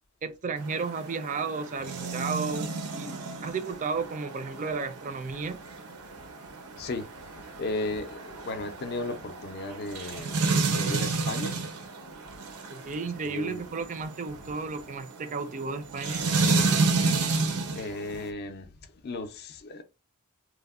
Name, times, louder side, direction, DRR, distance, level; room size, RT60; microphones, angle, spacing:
voice 1, 0.2-3.1 3.4-5.6 12.7-16.2, right 4 dB, 35° right, 0.4 m, -33 dB
sound 1, 0.6-18.3, right 3 dB, 85° right, 0.6 m, -31 dB
voice 2, 6.8-7.1 7.6-10.4 10.7-11.6 13.2-13.6 17.7-18.7 19.0-19.8, left 2 dB, 45° left, 0.4 m, -35 dB
3.1 x 2.1 x 2.3 m
head